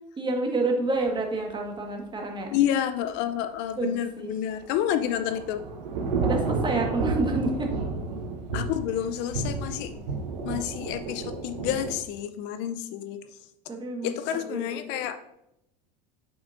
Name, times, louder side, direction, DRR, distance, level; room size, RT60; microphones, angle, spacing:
voice 1, 0.2-2.5 3.7-4.3 6.2-7.7 13.7-14.1 14.4-14.8, right 2 dB, 20° right, 2 dB, 1.6 m, -28 dB
voice 2, 2.5-5.6 8.5-9.9 10.4-13.2 14.0-15.2, left 10 dB, 55° left, 10 dB, 0.5 m, -29 dB
Thunder / Rain, 4.6-12.0, right 3 dB, 75° right, 0.9 m, -31 dB
7.5 x 5.8 x 2.6 m, 0.82 s
hypercardioid pair, 75°, 21 cm